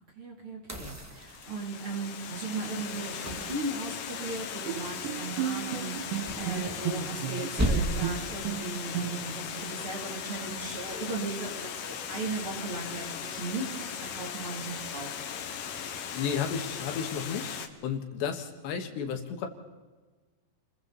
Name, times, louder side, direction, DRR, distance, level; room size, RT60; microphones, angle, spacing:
voice 1, 0.2-15.2, right 3 dB, 35° right, 0 dB, 3.4 m, -37 dB
sound 1, 0.7-2.0 3.3-4.4 6.2-7.3 7.6-8.3 10.6-11.0, equal, 15° right, 0.6 m, -33 dB
Water, 1.2-17.7, left 8 dB, 65° left, 2.7 m, -38 dB
Bowed string instrument, 4.7-9.5, right 11 dB, 90° right, 3.1 m, -34 dB
voice 2, 16.1-19.5, left 7 dB, 80° left, 5 dB, 3.9 m, -33 dB
29.5 x 21.5 x 4.1 m, 1.3 s
omnidirectional pair, 4.9 m